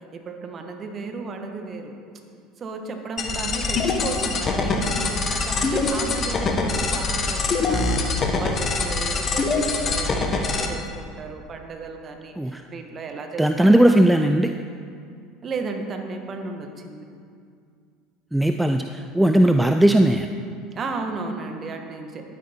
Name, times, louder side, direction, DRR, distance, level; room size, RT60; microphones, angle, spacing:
voice 1, 0.1-1.9 2.6-8.1 8.4-13.8 15.4-17.1 20.7-22.4, right 3 dB, 35° right, 4 dB, 1.4 m, -34 dB
sound 1, 3.2-10.7, left 3 dB, 35° left, 1.3 m, -24 dB
voice 2, 13.4-14.5 18.3-20.3, right 1 dB, 5° right, 6 dB, 0.4 m, -18 dB
10.5 x 9.7 x 4.4 m, 2.3 s
hypercardioid pair, 75°, 0 cm